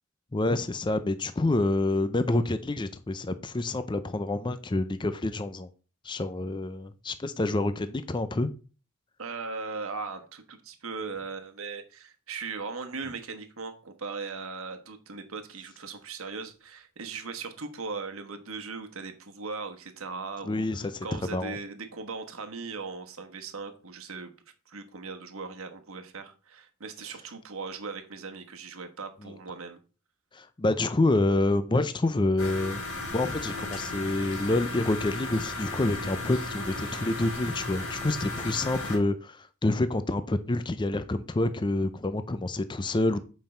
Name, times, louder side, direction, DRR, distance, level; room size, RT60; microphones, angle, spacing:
voice 1, 0.3-5.7 6.0-8.5 20.4-21.6 29.2-29.3 30.3-32.8 33.1-43.2, left 2 dB, 20° left, 11 dB, 0.5 m, -27 dB
voice 2, 9.2-24.3 24.7-29.8, right 4 dB, 65° right, 6 dB, 1.2 m, -38 dB
sound 1, 32.4-39.0, left 2 dB, 60° left, 3.2 m, -35 dB
7.7 x 5.4 x 4.4 m, 0.36 s
head